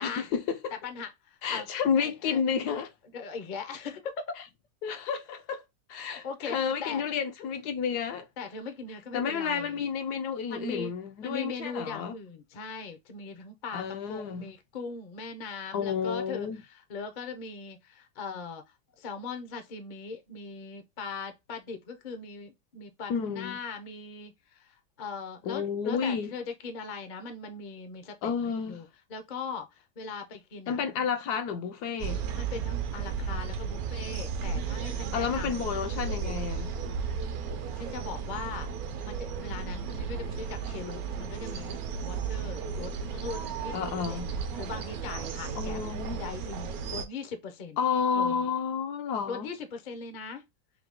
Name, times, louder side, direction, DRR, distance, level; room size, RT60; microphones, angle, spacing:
voice 1, 0.0-0.7 1.4-2.9 4.8-5.6 5.9-8.3 9.1-12.2 13.7-14.5 15.7-16.6 23.1-23.6 25.5-26.3 28.2-28.8 30.7-32.2 35.1-36.7 43.7-44.3 45.6-46.2 47.8-49.5, left 6 dB, 70° left, 1.1 m, -30 dB
voice 2, 0.8-1.7 2.0-2.4 3.1-4.1 6.2-7.0 8.4-9.9 10.5-10.9 11.2-18.6 19.0-29.7 30.0-30.8 32.3-35.7 37.7-38.7 39.0-43.8 44.1-45.8 46.2-47.8 48.1-48.4 49.3-50.4, left 5 dB, 50° left, 0.5 m, -40 dB
sound 1, 32.0-47.0, right 6 dB, 65° right, 1.0 m, -34 dB
3.9 x 2.8 x 3.6 m
omnidirectional pair, 1.9 m